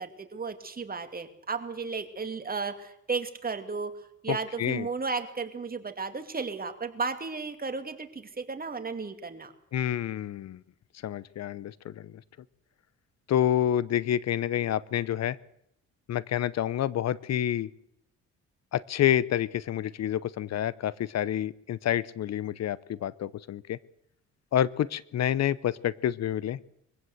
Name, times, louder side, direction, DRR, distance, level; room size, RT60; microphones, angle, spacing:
voice 1, 0.0-9.5, right 4 dB, 30° right, 7 dB, 2.5 m, -34 dB
voice 2, 4.3-4.9 9.7-10.6 11.0-12.1 13.3-15.4 16.1-17.7 18.7-23.8 24.5-26.6, left 11 dB, 60° left, 20 dB, 0.8 m, -28 dB
23.0 x 16.0 x 8.0 m, 0.78 s
cardioid pair, 90°, 30 cm